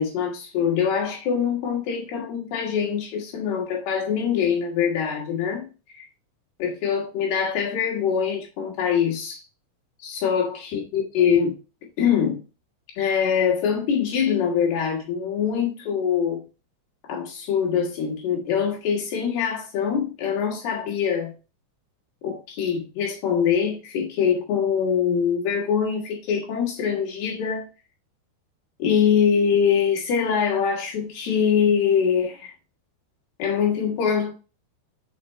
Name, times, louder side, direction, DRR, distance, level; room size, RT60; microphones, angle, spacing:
voice 1, 0.0-5.7 6.0-6.1 6.6-9.4 10.0-11.5 12.0-12.4 13.0-16.4 17.0-21.4 22.2-27.7 28.8-32.5 33.4-34.3, left 7 dB, 75° left, 3.6 m, -23 dB
6.9 x 4.6 x 3.1 m
omnidirectional pair, 4.7 m